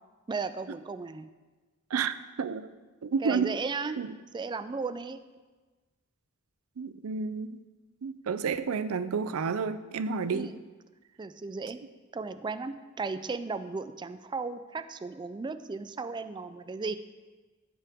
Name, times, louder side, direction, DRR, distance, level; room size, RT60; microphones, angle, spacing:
voice 1, 0.3-1.3 3.2-4.0 4.3-5.2 10.3-10.6 11.2-11.8 12.1-16.9, right 4 dB, 20° right, 12 dB, 0.3 m, -35 dB
voice 2, 1.9-2.7 3.0-3.5 4.0-4.1 6.8-7.6 8.0-10.5, right 5 dB, 85° right, 13 dB, 0.5 m, -30 dB
14.5 x 5.9 x 3.5 m, 1.3 s
head